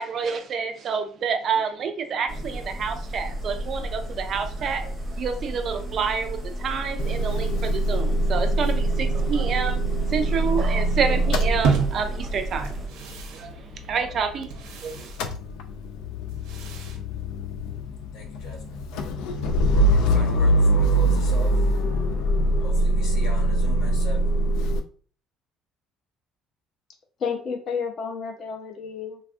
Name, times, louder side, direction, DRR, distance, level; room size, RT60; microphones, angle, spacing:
voice 1, 0.0-15.1, right 6 dB, 35° right, 7 dB, 0.3 m, -29 dB
sound 1, 2.3-12.9, right 1 dB, 10° right, 0.7 m, -33 dB
Motor vehicle (road) / Engine starting / Idling, 7.0-14.7 15.0-24.8, right 1 dB, 90° left, 0.3 m, -23 dB
sound 2, 11.6-17.9, right 6 dB, 80° right, 0.6 m, -32 dB
voice 2, 18.1-18.8 19.9-21.7 22.6-24.4, left 2 dB, 60° left, 0 dB, 1.0 m, -39 dB
voice 3, 27.2-29.2, left 6 dB, 35° left, 3 dB, 0.6 m, -31 dB
3.3 x 2.4 x 2.3 m, 0.42 s
cardioid pair, 175°, 0 cm